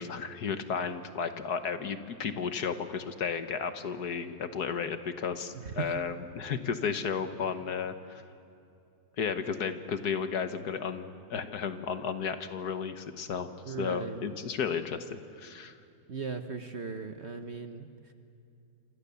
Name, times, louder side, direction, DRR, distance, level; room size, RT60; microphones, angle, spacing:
voice 1, 0.0-8.2 9.2-15.8, left 6 dB, 60° left, 9 dB, 1.6 m, -33 dB
voice 2, 5.5-5.9 13.6-14.3 16.1-18.1, right 5 dB, 45° right, 7 dB, 1.2 m, -38 dB
28.0 x 27.0 x 7.0 m, 2.6 s
omnidirectional pair, 2.0 m